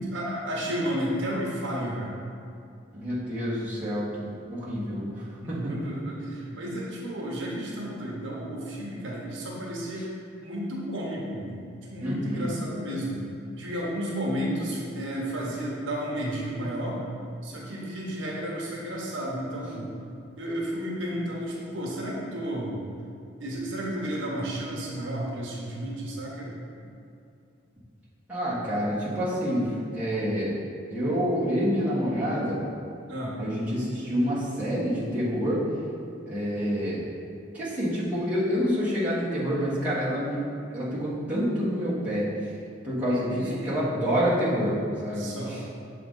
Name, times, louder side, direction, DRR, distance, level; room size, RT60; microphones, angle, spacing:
voice 1, 0.0-2.1 5.4-10.1 10.4-13.3 13.6-17.0 17.4-19.9 20.4-22.8 23.4-26.6 33.1-33.4 43.0-43.9 45.0-45.6, equal, 70° right, -3 dB, 1.0 m, -32 dB
voice 2, 2.9-5.8 12.0-12.5 28.3-30.5 30.9-32.6 33.4-35.6 36.3-37.1 37.5-40.4 40.7-42.3 42.8-44.8 45.0-45.6, equal, 10° right, -11 dB, 1.3 m, -27 dB
6.9 x 3.8 x 3.8 m, 2.5 s
head